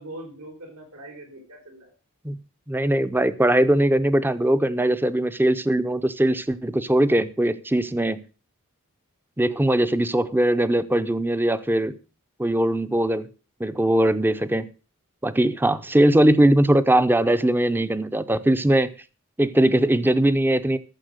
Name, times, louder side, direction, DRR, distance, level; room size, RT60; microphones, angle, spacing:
voice 1, 0.0-1.9 15.8-16.0, right 1 dB, 85° right, 4.1 m, -42 dB
voice 2, 2.7-8.2 9.4-11.9 12.4-13.3 13.6-14.7 15.2-18.9 19.4-20.8, right 1 dB, 10° right, 0.7 m, -20 dB
13.0 x 7.2 x 6.5 m
head